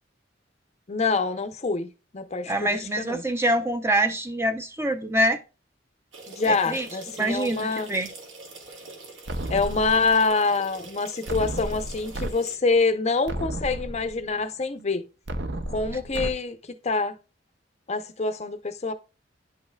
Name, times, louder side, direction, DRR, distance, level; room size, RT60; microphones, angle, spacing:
voice 1, 0.9-2.5 3.0-3.2 6.3-7.9 9.5-15.0 15.7-16.6 16.8-17.1 17.9-18.9, left 3 dB, 35° left, 0.6 m, -25 dB
voice 2, 2.5-5.4 6.5-6.9 7.1-8.1, right 1 dB, 15° right, 0.6 m, -25 dB
sound 1, 6.1-12.6, right 3 dB, 75° right, 2.1 m, -44 dB
sound 2, 9.3-10.3 11.3-12.3 12.8-12.9 13.3-14.3 15.3-16.3, right 1 dB, 60° right, 0.7 m, -33 dB
10.0 x 5.6 x 2.3 m
head